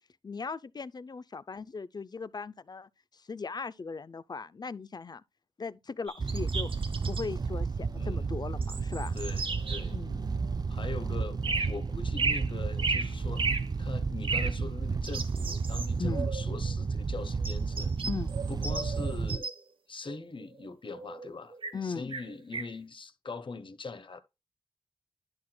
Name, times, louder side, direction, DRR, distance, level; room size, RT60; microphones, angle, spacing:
voice 1, 0.2-5.2 5.6-6.7 7.1-9.2 9.9-10.3 16.0-16.3 18.1-18.3 21.7-22.1, left 5 dB, 50° left, 0.5 m, -38 dB
sound 1, 6.1-7.3 8.6-9.9 11.4-11.8 12.2-13.7 14.2-14.5 15.0-16.4 17.4-19.6 20.1-21.8 22.1-22.7, right 4 dB, 75° right, 1.2 m, -34 dB
sound 2, 6.2-19.4, right 4 dB, 50° right, 0.4 m, -32 dB
voice 2, 8.0-8.3 9.1-9.9 10.7-13.5 13.8-17.9 18.5-19.5 19.9-21.5 21.8-24.2, left 4 dB, 65° left, 1.1 m, -42 dB
10.5 x 6.0 x 2.3 m
cardioid pair, 50°, 9 cm